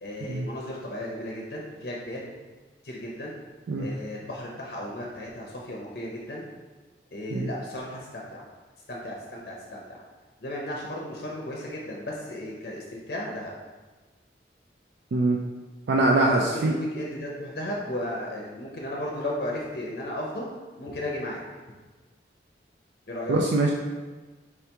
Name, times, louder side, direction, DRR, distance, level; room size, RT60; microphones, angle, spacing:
voice 1, 0.0-2.3 2.8-3.3 3.8-6.5 7.1-8.4 8.9-10.0 10.4-13.5 16.2-20.5 20.8-21.4 23.1-23.4, left 1 dB, 60° left, -2 dB, 0.6 m, -35 dB
voice 2, 15.9-16.8 23.3-23.7, right 2 dB, 80° right, -1 dB, 0.4 m, -23 dB
4.6 x 2.9 x 3.3 m, 1.3 s
head